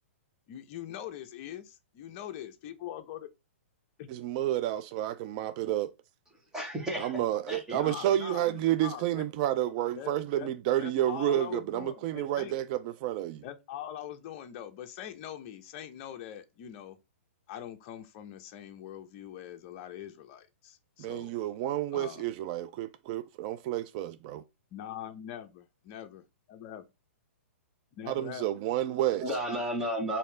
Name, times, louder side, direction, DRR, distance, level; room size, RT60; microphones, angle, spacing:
voice 1, 0.5-3.3 4.0-4.1 7.7-8.5 8.8-9.3 10.0-10.5 10.8-12.5 13.4-17.0 17.5-21.3 21.9-22.2 24.7-26.9 27.9-28.6 29.3-29.4, left 10 dB, 35° left, 0.7 m, -43 dB
voice 2, 4.1-5.9 7.0-13.4 21.0-24.4 28.1-29.2, right 12 dB, 35° right, 0.3 m, -30 dB
voice 3, 6.5-8.0 8.3-8.6 29.1-30.2, right 1 dB, 5° right, 1.2 m, -34 dB
4.4 x 2.7 x 3.3 m
hypercardioid pair, 150°, 7 cm